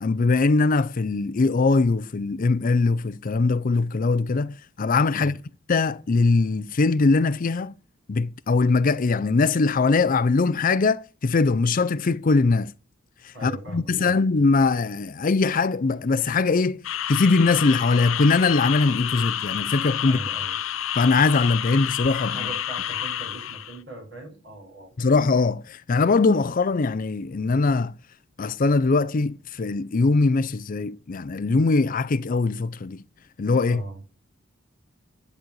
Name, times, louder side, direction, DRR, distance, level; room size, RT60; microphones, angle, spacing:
voice 1, 0.0-5.4 5.7-7.7 8.1-12.7 13.2-16.8 17.1-20.2 21.0-22.5 25.0-27.9 28.4-33.0 33.4-33.8, left 3 dB, 45° left, 0.5 m, -21 dB
voice 2, 13.3-14.1 20.0-20.5 22.3-25.1 33.7-34.0, right 2 dB, 65° right, 5.5 m, -39 dB
sound 1, 16.8-23.8, left 10 dB, 85° left, 0.7 m, -29 dB
10.5 x 4.3 x 7.6 m
head